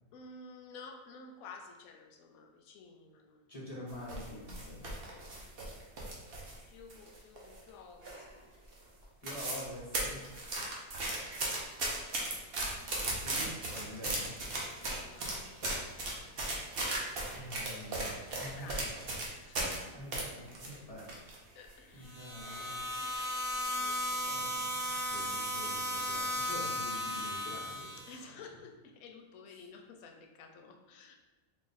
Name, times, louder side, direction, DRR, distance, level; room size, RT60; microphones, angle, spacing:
voice 1, 0.1-3.4 4.8-5.4 6.7-8.5 10.3-10.7 14.5-16.3 18.4-19.8 21.5-22.2 23.0-24.5 28.1-31.2, left 4 dB, 85° left, 4 dB, 1.0 m, -53 dB
voice 2, 3.5-4.9 9.2-10.2 13.1-14.3 17.3-18.7 19.9-21.1 21.9-22.8 24.2-28.0 28.3-28.4, left 1 dB, 30° left, -8 dB, 0.9 m, -46 dB
sound 1, 3.9-6.6 6.9-7.7 8.0-8.4 8.7-8.8 9.0-9.7 9.9-19.8 20.1-21.4 21.7-21.8 22.4-22.8 23.2-23.4, right 2 dB, 50° right, 0.9 m, -36 dB
sound 2, 22.0-28.2, left 1 dB, 70° right, 1.8 m, -35 dB
3.6 x 2.5 x 3.9 m, 1.1 s
omnidirectional pair, 1.4 m